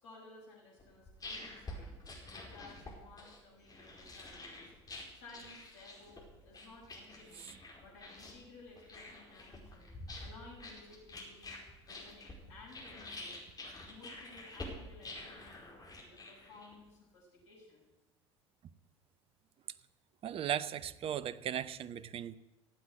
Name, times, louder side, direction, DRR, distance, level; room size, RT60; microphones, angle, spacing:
voice 1, 0.0-1.9 2.2-4.7 5.1-9.9 10.2-11.5 11.8-13.3 13.8-15.7 16.0-17.8, left 3 dB, 65° left, -5 dB, 6.1 m, -56 dB
sound 1, 0.8-16.9, left 2 dB, 25° left, 5.0 m, -48 dB
voice 2, 20.2-22.3, right 10 dB, 40° right, 17 dB, 0.7 m, -37 dB
15.0 x 8.1 x 8.6 m, 1.0 s
figure-of-eight pair, 65°, 15 cm